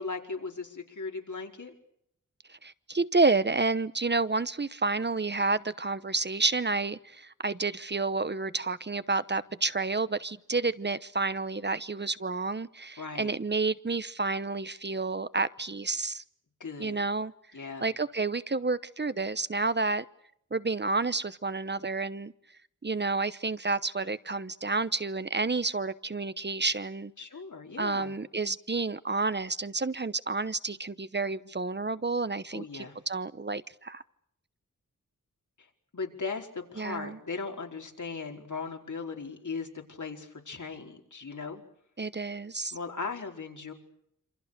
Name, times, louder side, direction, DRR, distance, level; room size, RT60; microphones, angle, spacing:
voice 1, 0.0-1.7 13.0-13.3 16.6-17.0 17.5-17.9 27.2-28.2 32.5-33.0 35.6-35.7 35.9-41.6 42.7-43.7, left 4 dB, 70° left, 4.8 m, -38 dB
voice 2, 2.5-16.2 16.8-17.3 17.8-20.0 20.5-22.3 22.8-27.1 27.8-34.0 36.8-37.2 42.0-42.7, right 3 dB, 35° right, 1.0 m, -30 dB
27.5 x 27.0 x 6.8 m
wide cardioid pair, 90°, 31 cm